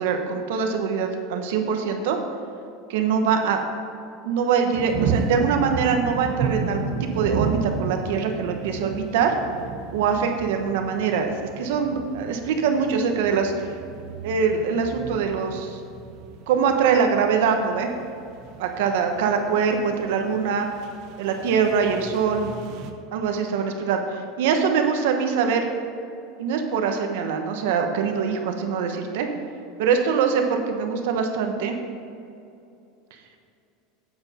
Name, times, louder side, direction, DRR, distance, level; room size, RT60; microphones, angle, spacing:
voice 1, 0.0-2.2 2.9-3.6 4.2-9.3 9.9-13.5 14.2-15.8 16.5-17.9 18.6-20.7 21.2-22.5 23.1-25.7 26.4-29.3 29.8-31.7, right 6 dB, 65° right, 4 dB, 1.0 m, -23 dB
sound 1, 4.7-22.9, right 5 dB, 40° right, 0.7 m, -33 dB
9.1 x 7.9 x 4.3 m, 2.6 s
supercardioid pair, 180°, 0 cm